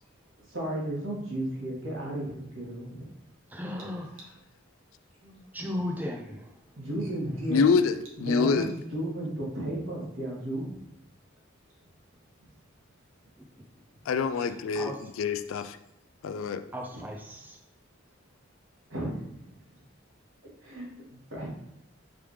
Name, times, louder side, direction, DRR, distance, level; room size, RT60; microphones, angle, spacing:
voice 1, 0.5-3.1 5.2-5.5 6.7-7.6 8.2-8.6 8.9-10.7 14.4-14.5 15.0-15.1 18.9-19.6 20.6-21.5, right 1 dB, 70° right, -4 dB, 1.6 m, -34 dB
voice 2, 3.5-4.1 5.5-6.5 14.7-15.0 16.7-17.6, left 1 dB, 10° right, 1 dB, 0.4 m, -35 dB
voice 3, 7.5-7.9 8.2-8.7 14.1-15.8 16.2-16.6, left 5 dB, 75° left, 11 dB, 0.3 m, -26 dB
4.9 x 3.4 x 3.1 m, 0.81 s
head